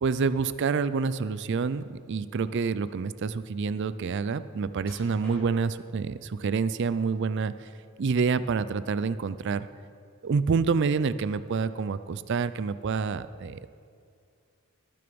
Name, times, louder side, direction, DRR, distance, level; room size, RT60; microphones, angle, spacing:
voice 1, 0.0-7.7 8.0-9.7 10.2-13.7, right 5 dB, 50° right, 14 dB, 0.4 m, -27 dB
sound 1, 4.8-5.8 6.5-7.2 7.6-8.5 8.9-9.0 9.6-9.7, equal, 5° left, 3.5 m, -51 dB
18.5 x 6.9 x 5.2 m, 2.4 s
head